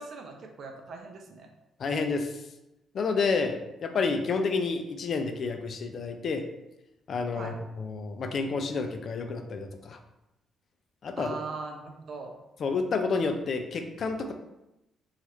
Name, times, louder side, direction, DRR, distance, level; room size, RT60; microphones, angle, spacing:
voice 1, 0.0-1.5 7.3-7.5 11.2-12.3, right 4 dB, 60° right, 3 dB, 0.5 m, -40 dB
voice 2, 1.8-2.3 2.9-6.4 7.1-10.0 11.0-11.3 12.6-14.3, left 4 dB, 55° left, 6 dB, 0.3 m, -29 dB
2.9 x 2.4 x 3.1 m, 0.93 s
cardioid pair, 90°, 0 cm